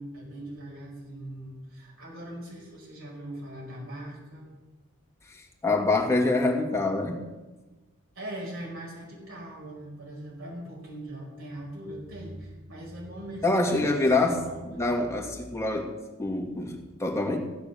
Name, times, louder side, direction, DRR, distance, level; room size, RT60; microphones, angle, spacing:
voice 1, 0.0-4.5 8.2-14.8, right 1 dB, 70° right, -4 dB, 5.2 m, -40 dB
voice 2, 5.3-7.3 13.4-14.4 14.7-15.9 16.2-17.4, left 2 dB, 15° left, 0 dB, 2.5 m, -26 dB
16.0 x 10.5 x 7.1 m, 1.1 s
head